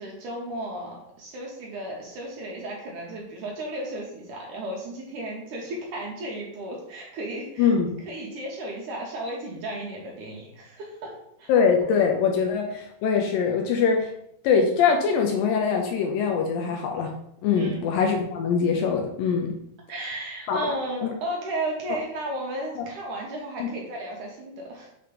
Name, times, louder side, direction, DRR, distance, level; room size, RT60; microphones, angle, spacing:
voice 1, 0.0-11.1 11.4-11.5 17.6-17.8 19.9-24.9, right 1 dB, 70° right, -1 dB, 2.1 m, -34 dB
voice 2, 7.6-8.0 11.5-14.1 14.4-17.1 17.4-19.5 20.5-20.6 21.0-21.1 22.8-22.9 23.6-23.7, left 6 dB, 80° left, 2 dB, 2.2 m, -23 dB
6.8 x 3.0 x 5.0 m, 0.75 s
omnidirectional pair, 4.5 m